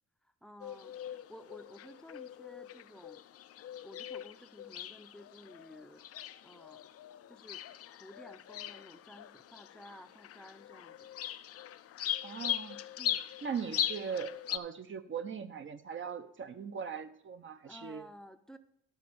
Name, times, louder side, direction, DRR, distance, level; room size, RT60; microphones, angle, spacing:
voice 1, 0.2-3.2 3.8-6.0 6.4-6.8 7.3-7.7 8.0-11.1 13.0-13.2 17.6-18.6, equal, ahead, 9 dB, 0.6 m, -53 dB
sound 1, 0.6-14.6, left 11 dB, 50° left, 0.5 m, -40 dB
voice 2, 12.2-12.8 13.4-18.1, right 6 dB, 40° right, 10 dB, 0.7 m, -40 dB
11.5 x 4.2 x 6.9 m, 0.72 s
cardioid pair, 90°, 30 cm